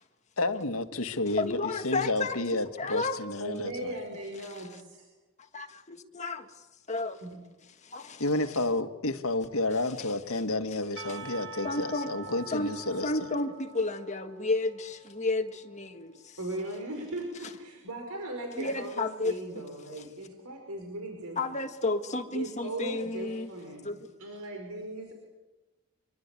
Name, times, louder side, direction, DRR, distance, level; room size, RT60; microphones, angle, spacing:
voice 1, 0.4-4.0 8.2-13.1, left 2 dB, 70° left, 1.6 m, -30 dB
voice 2, 1.4-2.4 2.8-3.2 4.5-4.7 5.5-6.5 6.9-7.2 7.8-8.2 10.0-10.1 11.6-12.1 12.5-12.7 13.0-16.4 18.5-19.4 19.9-20.0 21.4-23.5 23.8-24.0, left 2 dB, 30° left, 1.7 m, -32 dB
voice 3, 3.4-5.1 7.2-7.4 16.4-21.4 22.3-25.1, right 1 dB, 85° right, 5.1 m, -38 dB
Percussion / Church bell, 11.0-16.0, right 5 dB, 55° right, 1.7 m, -46 dB
25.0 x 24.0 x 8.4 m
head